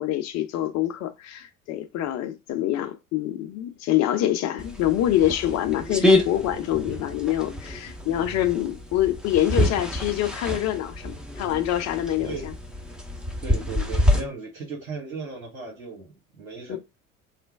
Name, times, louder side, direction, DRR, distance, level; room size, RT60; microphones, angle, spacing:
voice 1, 0.0-12.5 16.7-16.8, left 12 dB, 40° left, 0.6 m, -25 dB
sound 1, 4.6-14.2, left 1 dB, ahead, 0.6 m, -27 dB
voice 2, 13.4-16.8, right 4 dB, 80° right, 1.4 m, -36 dB
3.2 x 2.2 x 3.4 m
figure-of-eight pair, 65°, 41 cm